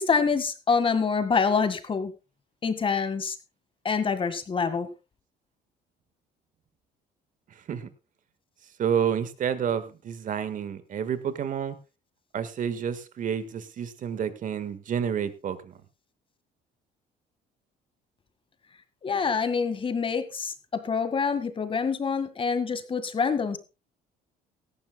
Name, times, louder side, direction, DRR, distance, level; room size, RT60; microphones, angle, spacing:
voice 1, 0.0-2.1 2.6-3.4 3.8-4.9 19.0-23.6, left 5 dB, 30° left, 11 dB, 1.8 m, -26 dB
voice 2, 8.8-11.8 12.3-15.7, right 8 dB, 50° right, 13 dB, 1.7 m, -29 dB
17.5 x 14.5 x 2.3 m, 0.29 s
cardioid pair, 110°, 17 cm